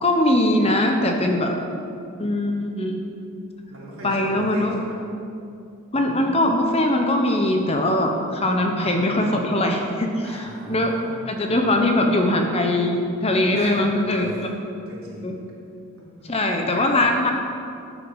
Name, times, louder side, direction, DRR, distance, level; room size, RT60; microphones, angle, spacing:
voice 1, 0.0-1.5 2.2-3.0 4.0-4.8 5.9-10.9 11.3-14.3 15.2-15.3 16.3-17.3, left 1 dB, 25° left, 3 dB, 1.1 m, -21 dB
voice 2, 3.7-5.0 10.2-11.8 13.5-14.4 14.9-15.4 16.0-16.3 16.7-16.9, right 1 dB, 70° right, -6 dB, 3.6 m, -39 dB
13.5 x 7.7 x 6.4 m, 2.5 s
head